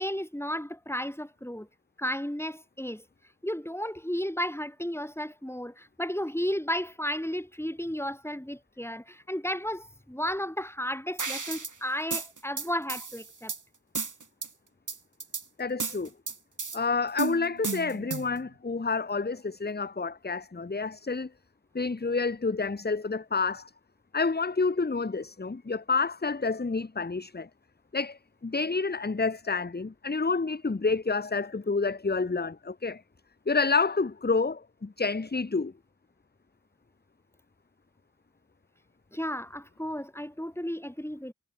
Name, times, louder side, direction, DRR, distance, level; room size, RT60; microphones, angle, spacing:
voice 1, 0.0-1.7 2.0-3.0 3.4-13.5 39.1-41.3, equal, 5° left, 5.7 m, -33 dB
sound 1, 11.2-11.7 12.1-13.6 13.9-14.5 14.9-15.4 15.8-16.8 17.2-18.4, right 4 dB, 65° right, 2.4 m, -33 dB
voice 2, 15.6-16.1 16.7-21.3 21.7-23.7 24.1-27.5 27.9-33.0 33.5-35.7, left 4 dB, 30° left, 0.9 m, -29 dB
wide cardioid pair, 45°, 33 cm